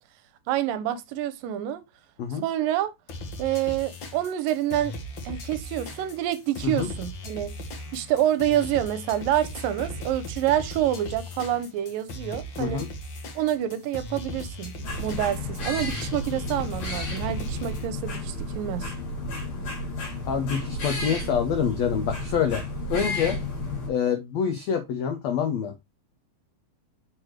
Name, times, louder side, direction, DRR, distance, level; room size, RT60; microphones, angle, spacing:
voice 1, 0.5-1.8 2.4-2.9 3.4-5.0 5.3-7.5 7.9-12.9 13.4-14.7 15.0-18.9, right 12 dB, 80° right, 2.3 m, -27 dB
sound 1, 3.1-17.9, equal, 70° left, 1.1 m, -38 dB
sound 2, 14.8-23.9, left 1 dB, 50° left, 4.2 m, -32 dB
voice 2, 20.3-22.6 22.9-23.4 23.9-25.7, left 7 dB, 90° left, 1.5 m, -26 dB
6.4 x 6.1 x 3.1 m
omnidirectional pair, 4.1 m